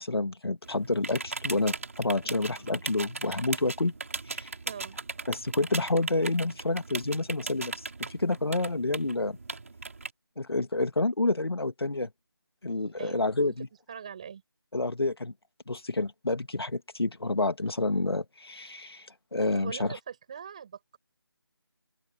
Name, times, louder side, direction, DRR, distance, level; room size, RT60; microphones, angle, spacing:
voice 1, 0.0-3.9 4.3-4.5 5.3-9.4 10.4-12.1 12.6-13.7 14.7-15.3 15.7-20.0, left 2 dB, 75° left, 2.3 m, -29 dB
sound 1, 0.6-10.1, right 3 dB, 35° right, 4.3 m, -38 dB
voice 2, 4.6-5.0 13.0-13.3 13.9-14.4 19.5-21.0, right 7 dB, 15° right, 7.3 m, -42 dB
open air
figure-of-eight pair, 175°, 13 cm